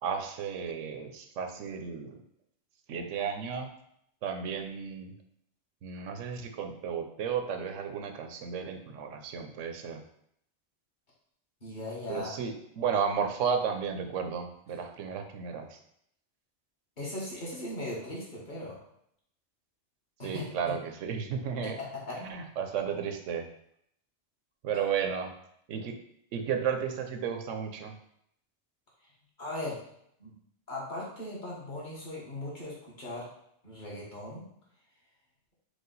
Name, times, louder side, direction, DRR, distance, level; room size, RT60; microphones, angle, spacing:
voice 1, 0.0-2.2 2.9-3.7 4.2-5.1 5.8-10.0 12.1-15.8 20.2-21.8 22.2-23.5 24.6-25.3 25.7-25.9 26.3-28.0, right 7 dB, 90° right, 5 dB, 1.0 m, -33 dB
voice 2, 11.6-12.3 15.1-15.2 17.0-18.8 20.2-20.7 21.6-22.2 24.7-24.9 29.4-29.8 30.2-30.3 30.7-33.3 33.6-34.4, left 2 dB, 40° left, -6 dB, 1.5 m, -38 dB
4.9 x 2.3 x 3.9 m, 0.72 s
omnidirectional pair, 1.2 m